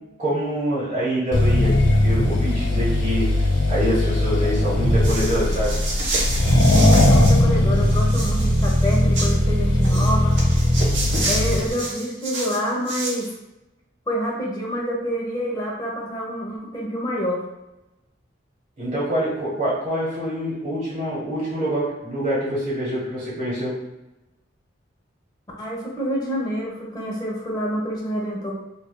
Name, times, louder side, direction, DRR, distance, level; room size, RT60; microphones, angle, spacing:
voice 1, 0.2-3.3 3.7-5.7 18.8-23.7, equal, 35° right, -8 dB, 1.2 m, -25 dB
Accelerating revving vroom, 1.3-11.7, left 1 dB, 85° left, 0.7 m, -19 dB
sound 1, 5.0-7.4 7.7-9.3 9.8-13.3, right 2 dB, 75° right, 0.9 m, -29 dB
voice 2, 6.7-10.4 11.2-13.3 14.1-17.4 25.6-28.5, equal, 20° left, -3 dB, 0.8 m, -27 dB
4.9 x 2.6 x 2.2 m, 0.96 s
head